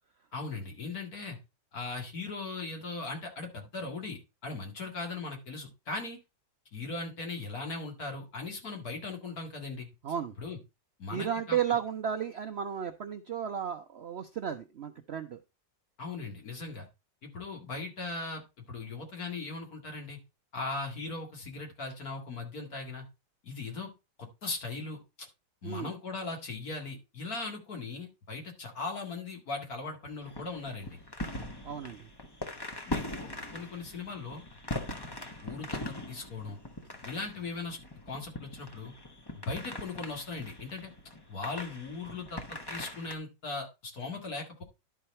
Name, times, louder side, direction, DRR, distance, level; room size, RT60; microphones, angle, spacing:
voice 1, 0.3-1.4 1.7-6.2 6.7-9.9 10.4-10.6 11.0-11.6 16.0-16.9 17.2-18.4 18.7-20.2 20.5-23.1 23.4-23.9 24.2-25.3 25.6-31.0 32.8-34.4 35.4-36.6 37.0-37.8 38.1-38.9 39.3-40.9 41.3-44.6, left 3 dB, 55° left, 2 dB, 2.5 m, -39 dB
voice 2, 10.0-10.3 11.1-15.4 25.6-25.9 31.6-32.1, right 8 dB, 90° right, 7 dB, 0.5 m, -33 dB
sound 1, 30.2-43.1, left 1 dB, 20° left, 0.7 m, -41 dB
11.0 x 4.8 x 4.3 m, 0.26 s
omnidirectional pair, 1.9 m